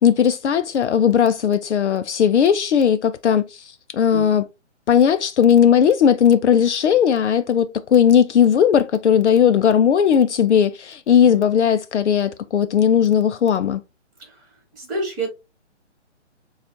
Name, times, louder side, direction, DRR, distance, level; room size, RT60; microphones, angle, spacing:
voice 1, 0.0-4.4 4.9-13.8, left 8 dB, 70° left, 0.5 m, -17 dB
voice 2, 14.7-15.3, right 2 dB, 10° right, 1.3 m, -28 dB
6.6 x 2.4 x 2.7 m
hypercardioid pair, 170°, 36 cm